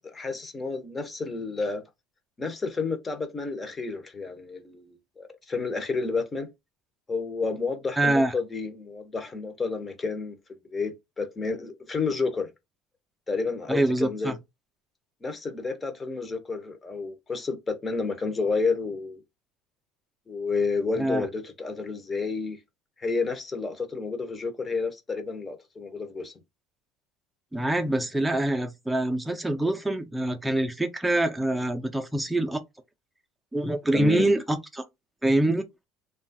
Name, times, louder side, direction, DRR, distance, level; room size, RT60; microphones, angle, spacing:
voice 1, 0.1-1.8 2.4-6.5 7.1-10.4 10.7-12.5 13.3-14.3 15.2-19.2 20.3-22.6 23.0-26.3 33.9-34.3, left 4 dB, 20° left, 0.8 m, -30 dB
voice 2, 8.0-8.3 13.7-14.4 21.0-21.3 27.5-32.6 33.5-34.8 35.2-35.6, right 1 dB, 5° right, 0.6 m, -25 dB
3.0 x 2.3 x 2.6 m
supercardioid pair, 115°, 0 cm